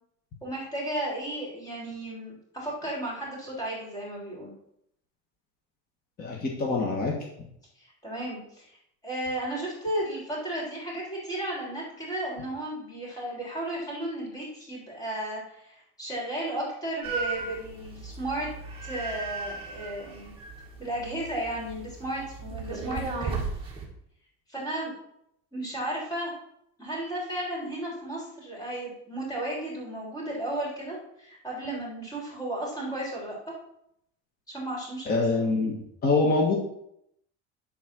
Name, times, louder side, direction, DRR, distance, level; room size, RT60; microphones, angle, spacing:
voice 1, 0.4-4.5 7.8-8.8 9.0-18.5 18.8-20.3 20.8-23.4 24.5-24.9 25.5-26.3 26.8-33.4 34.5-35.2, right 1 dB, 10° left, -4 dB, 3.7 m, -34 dB
voice 2, 6.2-7.2 35.1-35.7 36.0-36.6, left 3 dB, 25° left, -1 dB, 1.5 m, -24 dB
sound 1, 17.0-23.8, right 4 dB, 15° right, 2.1 m, -36 dB
11.5 x 4.3 x 6.1 m, 0.75 s
cardioid pair, 165°, 34 cm